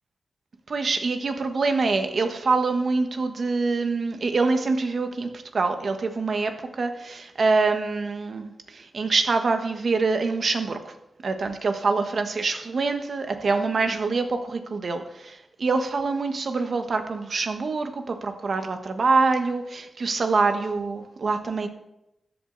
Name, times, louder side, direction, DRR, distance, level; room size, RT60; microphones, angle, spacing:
voice 1, 0.7-10.9 11.2-21.7, right 4 dB, 60° right, 7 dB, 1.3 m, -25 dB
13.5 x 8.2 x 4.0 m, 0.87 s
wide cardioid pair, 80°, 0 cm